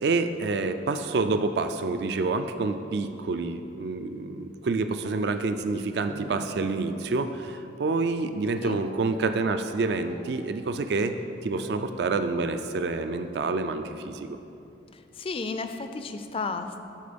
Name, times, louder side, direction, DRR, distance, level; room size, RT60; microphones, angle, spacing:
voice 1, 0.0-11.1 11.4-14.4, right 3 dB, 65° right, 9 dB, 0.4 m, -28 dB
Guitar, 6.1-7.3 8.5-9.5 9.8-10.9 11.5-15.0, left 1 dB, 75° left, 0.7 m, -46 dB
voice 2, 15.2-16.8, left 4 dB, 30° left, 8 dB, 0.4 m, -33 dB
12.0 x 4.3 x 5.1 m, 2.7 s
head